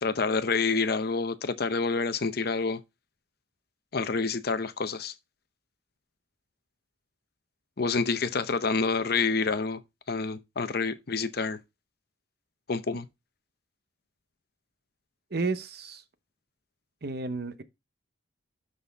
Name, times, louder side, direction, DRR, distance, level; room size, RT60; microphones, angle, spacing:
voice 1, 0.0-2.8 3.9-5.1 7.8-9.8 10.1-11.6 12.7-13.1, left 4 dB, 55° left, 0.7 m, -28 dB
voice 2, 15.3-16.0 17.0-17.6, right 3 dB, 55° right, 0.8 m, -32 dB
12.5 x 4.2 x 3.4 m
head